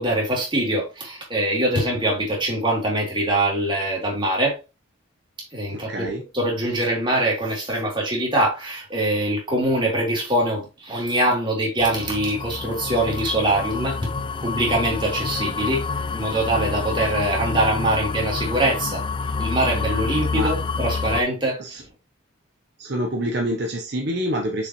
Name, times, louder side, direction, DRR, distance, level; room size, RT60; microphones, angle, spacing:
voice 1, 0.0-4.5 5.5-14.0 14.4-15.8 16.1-19.0 19.4-21.6, right 1 dB, 25° right, 3.0 m, -23 dB
voice 2, 5.7-6.2 20.3-20.5 21.6-21.8 22.8-24.7, equal, 55° right, 1.0 m, -26 dB
sound 1, 11.8-21.2, left 4 dB, 25° left, 0.4 m, -28 dB
6.5 x 5.5 x 3.1 m
head